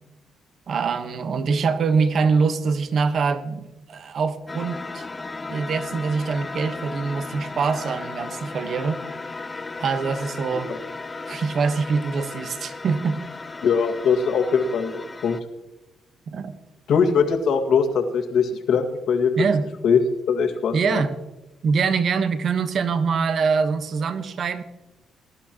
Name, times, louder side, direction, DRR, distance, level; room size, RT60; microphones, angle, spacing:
voice 1, 0.7-5.1 5.5-9.0 9.8-10.7 11.3-13.2 16.3-16.5 19.4-19.7 20.7-21.1 21.6-24.6, right 5 dB, 55° right, 10 dB, 1.2 m, -24 dB
sound 1, 4.5-15.4, left 3 dB, 20° left, 0.7 m, -35 dB
voice 2, 13.6-15.4 16.9-19.3 19.8-20.0 20.3-21.0, left 6 dB, 70° left, 4 dB, 1.9 m, -21 dB
21.0 x 11.5 x 3.0 m, 0.99 s
cardioid pair, 90°, 0 cm